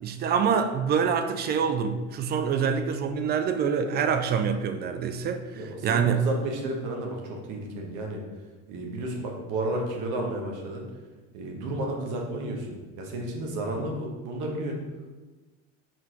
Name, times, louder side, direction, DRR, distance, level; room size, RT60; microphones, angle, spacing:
voice 1, 0.0-6.3, right 6 dB, 30° right, 7 dB, 0.4 m, -26 dB
voice 2, 5.6-8.2 8.7-10.8 11.3-14.8, right 1 dB, 50° right, 0 dB, 1.2 m, -32 dB
4.5 x 3.9 x 2.9 m, 1.2 s
hypercardioid pair, 70°, 38 cm